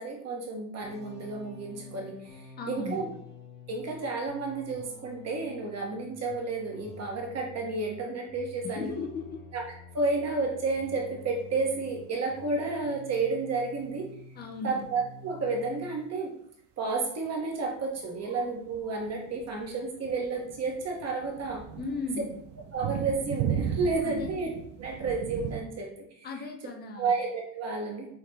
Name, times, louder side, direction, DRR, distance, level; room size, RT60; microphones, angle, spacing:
voice 1, 0.0-3.1 3.7-9.0 9.5-9.6 9.9-14.1 14.6-16.3 16.8-21.6 22.2-22.3 22.7-24.5 24.8-25.9 26.2-26.3 26.6-28.1, right 3 dB, 35° right, 1 dB, 0.9 m, -31 dB
sound 1, 0.8-14.5 14.8-16.0, left 2 dB, 70° left, 1.3 m, -49 dB
voice 2, 2.6-3.0 8.6-9.4 14.4-14.8 21.8-22.3 24.0-24.3 26.2-27.1, left 4 dB, 25° left, 2 dB, 0.4 m, -36 dB
sound 2, 17.3-25.6, right 8 dB, 65° right, 0.5 m, -36 dB
5.7 x 2.1 x 3.2 m, 0.71 s
cardioid pair, 155°, 45 cm